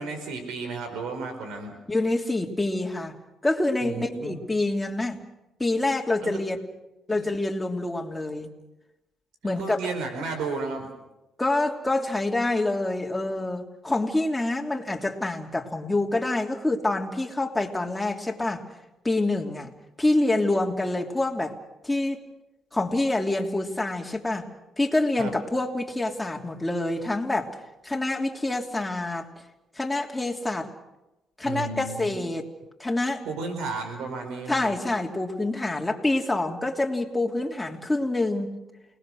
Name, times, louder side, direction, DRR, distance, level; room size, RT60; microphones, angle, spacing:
voice 1, 0.0-1.7 3.8-4.4 6.2-6.4 7.1-7.3 9.4-10.9 25.2-25.3 31.4-32.2 33.2-34.7, right 4 dB, 90° right, 6 dB, 4.7 m, -33 dB
voice 2, 1.9-3.1 3.4-5.2 5.6-6.6 7.1-8.5 9.4-9.9 11.4-18.6 19.0-19.7 20.0-21.6 21.8-22.2 22.7-24.4 24.8-27.5 27.8-29.3 29.8-30.7 31.4-32.5 32.8-33.2 34.5-38.5, left 2 dB, 10° left, 1 dB, 3.1 m, -26 dB
29.5 x 19.5 x 6.5 m, 0.97 s
cardioid pair, 90°, 0 cm